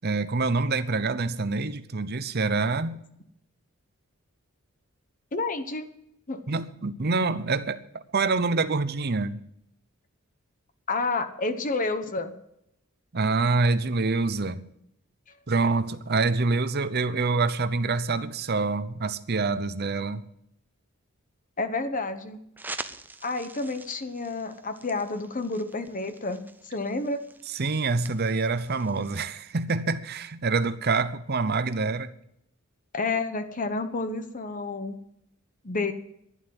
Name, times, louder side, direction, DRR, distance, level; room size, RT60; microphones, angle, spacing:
voice 1, 0.0-3.0 6.5-9.4 13.1-14.6 15.5-20.2 27.5-32.1, right 3 dB, 45° right, 0.8 m, -26 dB
voice 2, 5.3-5.9 6.3-6.4 10.9-12.3 21.6-22.4 23.2-27.2 32.9-35.0 35.6-35.9, left 3 dB, 35° left, 1.0 m, -30 dB
sound 1, 22.6-29.4, right 3 dB, 10° right, 0.5 m, -45 dB
11.5 x 11.0 x 7.7 m
head